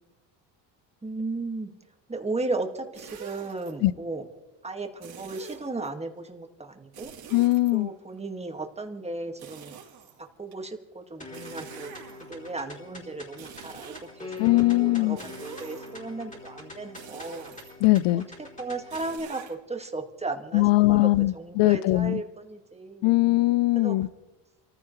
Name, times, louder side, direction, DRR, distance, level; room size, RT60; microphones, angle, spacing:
voice 1, 1.0-1.7 2.1-4.2 4.6-7.1 7.7-9.8 10.2-11.9 12.3-17.6 18.4-23.2 23.8-24.0, right 3 dB, 15° right, 2.0 m, -35 dB
sound 1, 2.9-3.7 5.0-5.9 6.9-8.2 9.4-10.5 11.3-12.5 13.3-14.4 15.2-16.1 17.0-18.0 18.9-19.5, right 8 dB, 55° right, 3.5 m, -46 dB
voice 2, 7.3-7.9 14.4-15.2 17.8-18.3 20.5-22.2 23.0-24.1, left 19 dB, 70° left, 0.7 m, -21 dB
sound 2, 11.2-19.2, left 3 dB, 15° left, 3.6 m, -44 dB
28.5 x 15.0 x 3.2 m
supercardioid pair, 95°, 47 cm